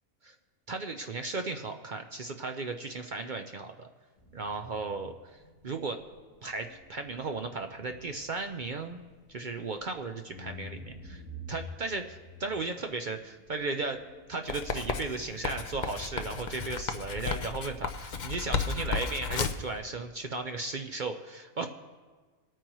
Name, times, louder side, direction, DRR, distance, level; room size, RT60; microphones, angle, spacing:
voice 1, 0.7-3.9 4.3-5.1 5.6-6.0 6.4-9.0 9.3-11.2 11.5-14.0 14.3-21.7, right 3 dB, 55° right, 5 dB, 0.6 m, -35 dB
sound 1, 4.2-15.6, left 1 dB, 20° left, 3.1 m, -50 dB
Writing, 14.5-19.7, left 5 dB, 50° left, 0.5 m, -33 dB
24.5 x 9.1 x 3.0 m, 1.4 s
omnidirectional pair, 1.4 m